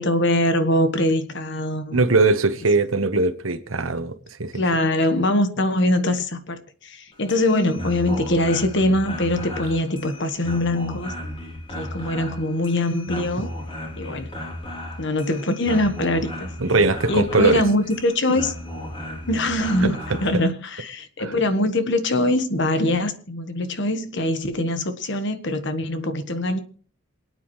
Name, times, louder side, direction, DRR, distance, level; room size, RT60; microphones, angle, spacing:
voice 1, 0.0-2.1 4.5-11.1 11.7-13.5 14.0-14.3 15.0-16.5 17.1-18.5 19.3-26.6, left 1 dB, 60° left, 1.4 m, -23 dB
voice 2, 1.9-4.6 16.6-17.6 19.8-19.9 21.2-21.3, right 3 dB, 80° right, 1.2 m, -20 dB
sound 1, 7.1-20.4, left 1 dB, 25° left, 3.5 m, -35 dB
27.5 x 9.4 x 3.2 m
head